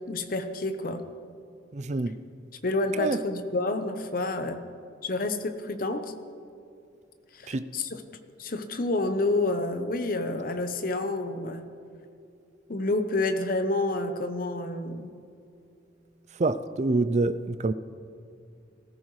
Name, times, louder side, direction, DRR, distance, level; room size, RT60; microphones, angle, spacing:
voice 1, 0.1-1.1 2.6-4.6 5.0-6.1 7.3-8.0 8.4-11.6 12.7-15.1, left 2 dB, 50° left, 8 dB, 0.9 m, -29 dB
voice 2, 1.7-2.1 2.9-3.2 7.5-7.7 16.4-17.7, right 2 dB, 40° right, 12 dB, 0.4 m, -26 dB
19.0 x 14.0 x 3.2 m, 2.5 s
head